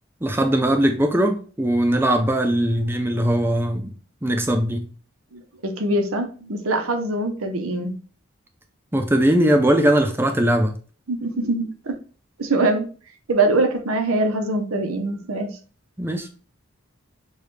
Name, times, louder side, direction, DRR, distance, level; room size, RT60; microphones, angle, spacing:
voice 1, 0.2-3.9 4.2-4.9 8.9-10.7 16.0-16.3, right 1 dB, 10° right, 0.5 m, -20 dB
voice 2, 5.3-7.9 11.1-12.0 12.4-12.9 13.3-15.5, right 2 dB, 85° right, 0.9 m, -23 dB
6.4 x 2.4 x 3.2 m
head